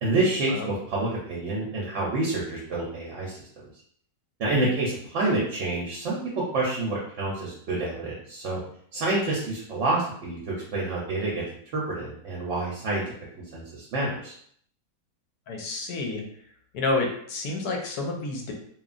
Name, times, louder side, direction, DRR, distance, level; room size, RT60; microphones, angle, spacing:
voice 1, 0.0-3.4 4.4-8.6 8.9-11.4 11.7-13.0 13.5-14.3, right 2 dB, 60° right, -4 dB, 0.8 m, -28 dB
voice 2, 15.5-16.2 16.7-18.5, left 3 dB, 80° left, 1 dB, 1.1 m, -29 dB
3.0 x 2.3 x 2.4 m, 0.63 s
omnidirectional pair, 1.7 m